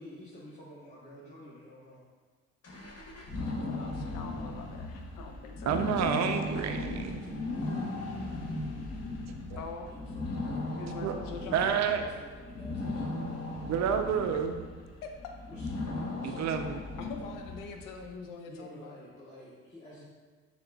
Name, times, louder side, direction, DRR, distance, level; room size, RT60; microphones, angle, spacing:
voice 1, 0.0-2.0 6.2-7.9 9.8-10.2 11.3-13.1 15.5-15.7 16.2-16.5 18.5-20.1, equal, 20° left, -9 dB, 1.1 m, -49 dB
sound 1, 2.6-18.1, left 2 dB, 40° left, 1.0 m, -37 dB
voice 2, 3.6-5.8 9.6-9.9 10.8-11.7 15.0-15.3 17.0-19.0, left 4 dB, 65° left, 4 dB, 0.6 m, -43 dB
voice 3, 5.7-7.2 9.5-9.6 11.0-11.2 11.5-12.0 13.7-14.7 16.2-16.7, right 7 dB, 50° right, 6 dB, 0.5 m, -29 dB
6.8 x 2.4 x 2.3 m, 1.4 s
hypercardioid pair, 65°, 36 cm